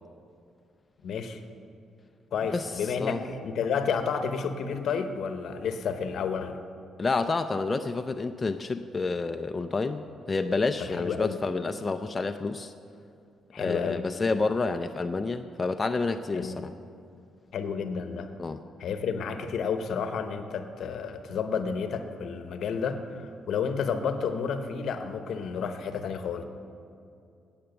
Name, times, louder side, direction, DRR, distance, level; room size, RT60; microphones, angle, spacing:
voice 1, 1.0-1.4 2.3-6.6 10.8-11.4 13.5-14.1 16.3-16.7 17.5-18.3 18.8-26.4, left 6 dB, 70° left, 8 dB, 0.8 m, -31 dB
voice 2, 7.0-12.7 13.6-16.7 18.4-18.6, left 3 dB, 25° left, 7 dB, 0.4 m, -29 dB
8.8 x 8.6 x 6.7 m, 2.5 s
cardioid pair, 90°, 0 cm